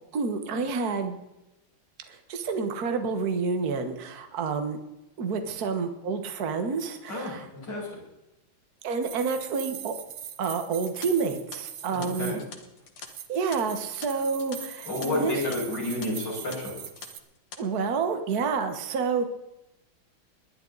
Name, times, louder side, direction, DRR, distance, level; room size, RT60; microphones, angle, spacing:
voice 1, 0.1-1.2 2.1-4.8 5.2-7.5 8.8-9.9 10.4-12.3 13.3-15.4 17.6-19.3, right 5 dB, 50° right, 7 dB, 1.7 m, -29 dB
sound 1, 9.0-12.5 13.0-17.2, right 9 dB, 65° right, 1.4 m, -42 dB
sound 2, 10.8-15.1 15.4-15.6 16.0-16.1 16.5-17.1 17.4-17.6, left 6 dB, 85° left, 2.4 m, -45 dB
voice 2, 11.9-12.4 14.9-16.7, left 2 dB, 50° left, -5 dB, 6.7 m, -30 dB
20.5 x 11.0 x 4.0 m, 0.92 s
omnidirectional pair, 2.3 m